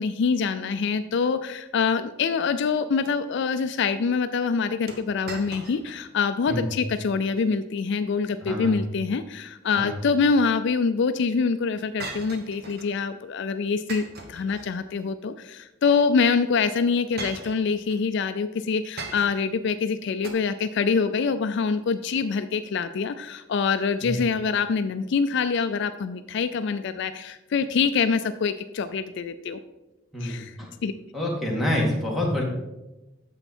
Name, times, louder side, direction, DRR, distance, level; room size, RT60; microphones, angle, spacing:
voice 1, 0.0-29.6 30.2-30.5 30.8-30.9, left 5 dB, 60° left, 11 dB, 0.4 m, -25 dB
sound 1, 4.9-6.1 6.4-6.5 7.1-7.5 9.4-10.3 12.0-13.0 13.9-15.1 16.2-16.3 17.2-18.0 19.0-19.6 20.2-20.3, right 3 dB, 50° right, 1.1 m, -39 dB
voice 2, 8.4-8.8 9.8-9.9 24.0-24.1 30.1-30.7 31.1-32.4, left 1 dB, ahead, -2 dB, 1.9 m, -27 dB
8.9 x 7.0 x 4.3 m, 0.99 s
head